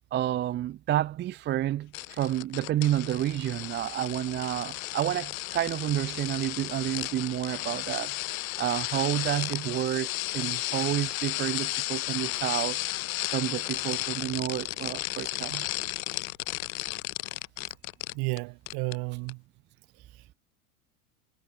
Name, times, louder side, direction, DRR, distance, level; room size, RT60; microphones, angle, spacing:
voice 1, 0.1-8.1 8.6-12.8 13.3-15.7, right 12 dB, 25° right, 0.5 m, -30 dB
sound 1, 1.9-18.4 18.7-19.0 19.3-19.4, left 18 dB, 80° left, 1.8 m, -34 dB
voice 2, 18.1-19.4 19.9-20.3, right 32 dB, 60° right, 4.0 m, -33 dB
supercardioid pair, 105°, 41 cm